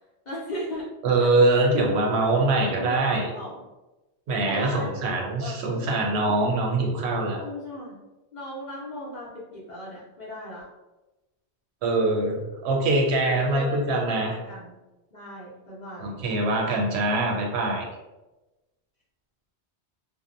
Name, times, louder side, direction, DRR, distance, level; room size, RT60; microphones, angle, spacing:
voice 1, 0.2-0.9 1.2-1.9 2.3-3.6 4.4-4.9 5.1-5.9 7.4-8.0 8.3-10.7 13.2-14.8 15.1-16.2, equal, 45° left, -7 dB, 0.7 m, -37 dB
voice 2, 1.0-3.3 4.3-7.4 11.8-14.3 16.0-17.9, right 2 dB, 70° right, -1 dB, 0.8 m, -23 dB
2.7 x 2.0 x 2.5 m, 1.1 s
omnidirectional pair, 1.2 m